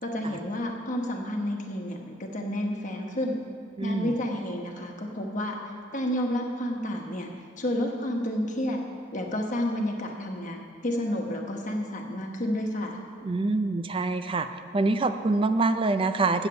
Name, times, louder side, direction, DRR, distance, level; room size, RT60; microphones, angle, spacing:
voice 1, 0.0-3.4 3.8-5.6 5.9-7.3 7.6-8.8 9.1-13.0, left 1 dB, 40° left, 2 dB, 1.1 m, -30 dB
voice 2, 3.8-4.2 13.2-14.5 14.7-16.5, right 3 dB, 25° right, 10 dB, 0.4 m, -25 dB
8.1 x 7.3 x 7.8 m, 2.1 s
head